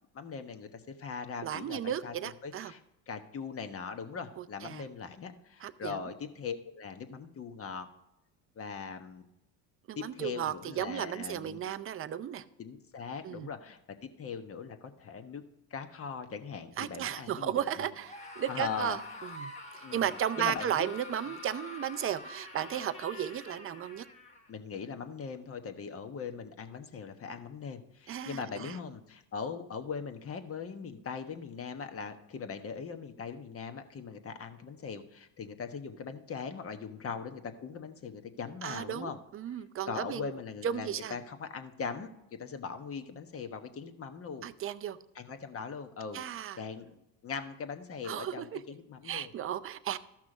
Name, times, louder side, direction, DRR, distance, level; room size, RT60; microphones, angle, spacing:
voice 1, 0.1-2.1 2.4-2.8 3.1-7.9 8.5-9.2 9.9-11.6 12.6-15.4 15.7-17.9 18.5-19.2 19.8-20.9 24.5-39.2 39.9-44.5 45.1-46.2 46.6-46.9 47.2-49.3, left 6 dB, 30° left, 7 dB, 1.2 m, -40 dB
voice 2, 1.4-2.7 4.4-4.8 5.6-6.0 9.9-12.4 13.2-13.5 16.8-24.1 28.1-28.8 38.6-40.3 40.6-41.2 44.4-45.0 46.1-46.6 48.0-48.6 49.0-50.0, right 10 dB, 30° right, 13 dB, 0.6 m, -35 dB
Screaming, 18.0-24.5, left 3 dB, 15° left, 1.4 m, -46 dB
13.5 x 6.1 x 4.9 m, 0.91 s
supercardioid pair, 105°, 45 cm